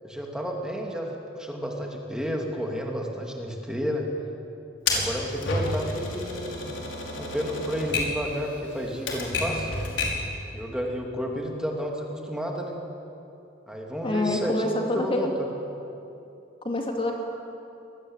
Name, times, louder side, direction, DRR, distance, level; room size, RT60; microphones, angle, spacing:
voice 1, 0.0-4.1 4.9-6.6 7.2-9.7 10.5-12.8 13.7-15.5, equal, 5° right, 0 dB, 2.9 m, -31 dB
Typewriter, 4.9-10.3, left 2 dB, 85° left, 5.3 m, -30 dB
voice 2, 14.0-15.3 16.6-17.1, left 2 dB, 30° left, 1 dB, 2.5 m, -26 dB
25.5 x 20.5 x 9.0 m, 2.8 s
head